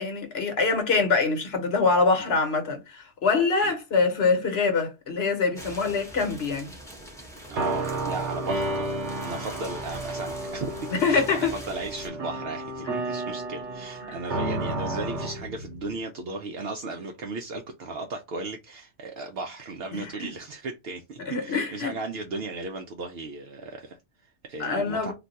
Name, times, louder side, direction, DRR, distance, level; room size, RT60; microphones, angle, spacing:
voice 1, 0.0-6.7 10.9-11.5 14.0-14.2 19.9-20.3 21.3-22.0 24.6-25.1, left 4 dB, 65° left, 1.1 m, -24 dB
sound 1, 5.5-12.1, right 1 dB, 5° left, 0.7 m, -43 dB
voice 2, 7.5-25.1, right 3 dB, 65° right, 0.7 m, -36 dB
sound 2, 7.5-16.0, right 2 dB, 90° right, 1.2 m, -32 dB
2.5 x 2.2 x 3.9 m
omnidirectional pair, 1.2 m